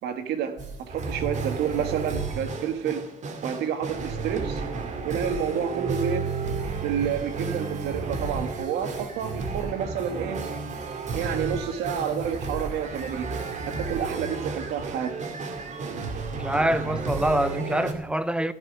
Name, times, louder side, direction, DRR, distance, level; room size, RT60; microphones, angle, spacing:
voice 1, 0.0-3.0 3.4-4.6 5.0-6.3 6.8-10.4 11.1-13.3 13.8-15.1, right 8 dB, 75° right, 1.8 m, -29 dB
sound 1, 0.6-17.9, right 4 dB, 45° right, 2.2 m, -32 dB
voice 2, 16.4-18.5, right 1 dB, 5° right, 0.7 m, -25 dB
15.5 x 6.0 x 9.5 m
cardioid pair, 110°, 17 cm